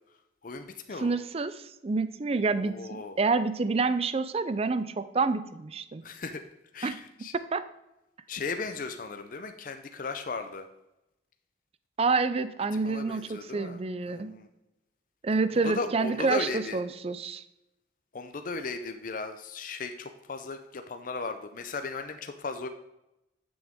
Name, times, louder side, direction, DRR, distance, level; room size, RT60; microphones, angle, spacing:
voice 1, 0.4-1.2 2.6-3.2 6.0-6.4 6.7-7.3 8.3-10.7 12.8-13.8 14.1-14.5 15.6-16.8 18.1-22.7, left 4 dB, 50° left, 7 dB, 0.5 m, -36 dB
voice 2, 1.0-6.0 6.8-7.0 7.5-7.6 12.0-14.3 15.2-17.4, right 4 dB, 35° right, 13 dB, 0.4 m, -28 dB
10.0 x 6.2 x 3.5 m, 0.92 s
head